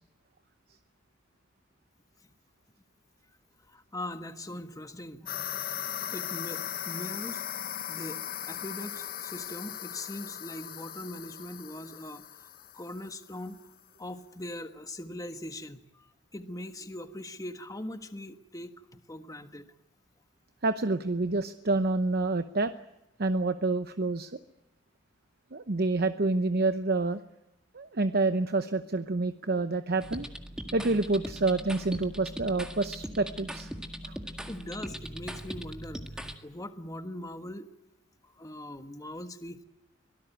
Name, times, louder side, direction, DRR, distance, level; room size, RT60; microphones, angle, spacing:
voice 1, 3.7-5.9 6.1-7.4 7.9-8.2 8.5-12.2 12.7-13.7 14.0-19.7 34.5-36.0 36.4-37.7 38.2-39.6, left 1 dB, 20° left, 8 dB, 1.5 m, -41 dB
sound 1, 5.3-13.5, left 10 dB, 50° left, 0.9 m, -38 dB
voice 2, 20.6-22.7 23.2-24.4 25.5-27.2 27.7-30.3 30.7-33.7 34.0-34.2, right 3 dB, 50° right, 10 dB, 0.9 m, -28 dB
sound 2, 30.0-36.4, equal, 5° right, 1.9 m, -40 dB
24.5 x 18.0 x 9.2 m, 0.91 s
head